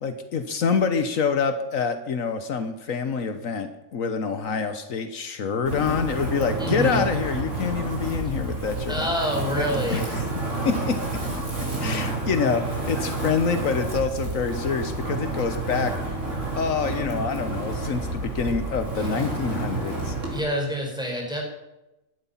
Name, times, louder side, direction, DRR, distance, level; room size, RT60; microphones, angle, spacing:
voice 1, 0.0-9.1 9.5-10.2 10.6-11.0 11.8-16.2 16.5-20.1, left 5 dB, 75° left, 9 dB, 1.5 m, -26 dB
Wind, 5.7-20.4, right 2 dB, 65° right, 4.2 m, -29 dB
voice 2, 6.6-7.0 8.9-10.0 19.0-19.1 20.3-21.4, equal, 5° right, -1 dB, 5.1 m, -27 dB
16.5 x 12.5 x 5.8 m, 0.95 s
omnidirectional pair, 1.4 m